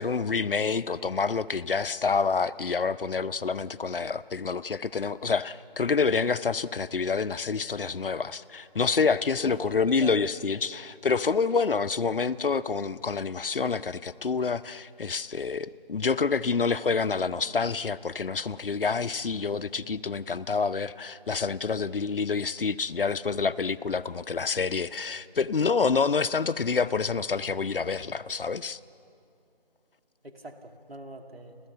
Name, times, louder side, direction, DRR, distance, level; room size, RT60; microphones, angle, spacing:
voice 1, 0.0-28.8, left 5 dB, 65° left, 14 dB, 0.6 m, -27 dB
voice 2, 9.4-10.1 30.2-31.6, right 1 dB, 80° right, 4 dB, 2.5 m, -43 dB
29.5 x 14.0 x 6.7 m, 2.6 s
figure-of-eight pair, 170°, 30 cm